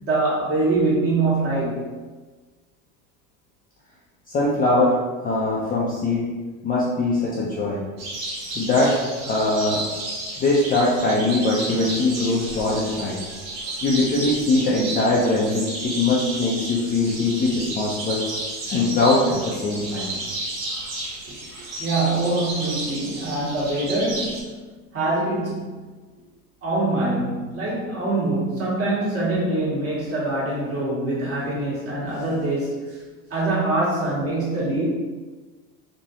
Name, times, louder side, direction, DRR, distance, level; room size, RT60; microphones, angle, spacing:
voice 1, 0.0-1.9 21.3-21.4 21.8-24.5 24.9-25.9 26.6-33.0 33.3-34.8, right 2 dB, 35° right, -7 dB, 1.5 m, -24 dB
voice 2, 4.3-6.3 6.6-7.8 8.6-9.8 10.4-13.2 13.8-18.2 18.7-20.2, left 2 dB, 20° left, -5 dB, 0.5 m, -22 dB
sound 1, 8.0-24.4, right 2 dB, 65° right, 1.1 m, -32 dB
3.1 x 2.5 x 2.8 m, 1.3 s
hypercardioid pair, 85°, 43 cm